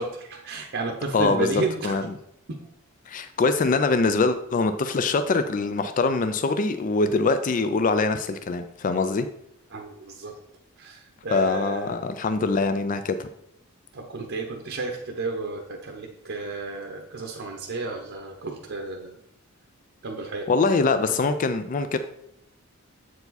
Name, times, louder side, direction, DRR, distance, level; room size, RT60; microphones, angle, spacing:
voice 1, 0.0-2.0 2.5-2.7 9.7-10.3 10.8-12.0 13.9-19.2 20.0-20.5 21.0-21.2, right 3 dB, 60° right, 0 dB, 0.8 m, -32 dB
voice 2, 1.1-2.0 3.1-9.3 11.3-13.3 20.5-22.0, left 3 dB, 40° left, 9 dB, 0.4 m, -23 dB
7.8 x 4.7 x 4.0 m, 0.78 s
head